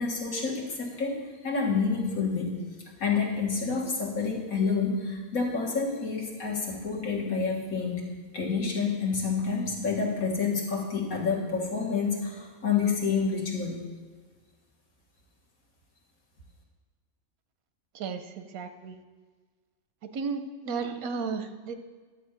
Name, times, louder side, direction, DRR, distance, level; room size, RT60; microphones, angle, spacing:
voice 1, 0.0-2.6 3.0-8.0 8.3-13.8, left 5 dB, 90° left, -2 dB, 2.1 m, -28 dB
voice 2, 17.9-19.0 20.0-21.8, right 5 dB, 90° right, 9 dB, 1.2 m, -34 dB
12.0 x 4.3 x 8.2 m, 1.5 s
omnidirectional pair, 1.4 m